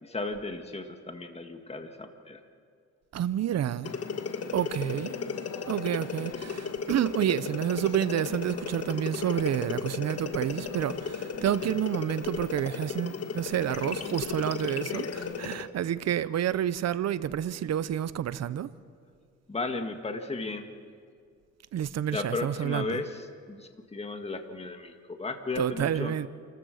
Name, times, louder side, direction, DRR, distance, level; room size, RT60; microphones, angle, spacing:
voice 1, 0.0-2.4 19.5-20.6 22.1-26.1, left 3 dB, 20° left, 1.8 m, -35 dB
voice 2, 3.1-3.9 4.5-5.1 5.7-18.7 21.7-23.0 25.6-26.3, right 10 dB, 60° right, 0.8 m, -29 dB
sound 1, 3.8-15.7, left 5 dB, 55° left, 1.6 m, -35 dB
29.0 x 14.5 x 6.5 m
cardioid pair, 90°, 30 cm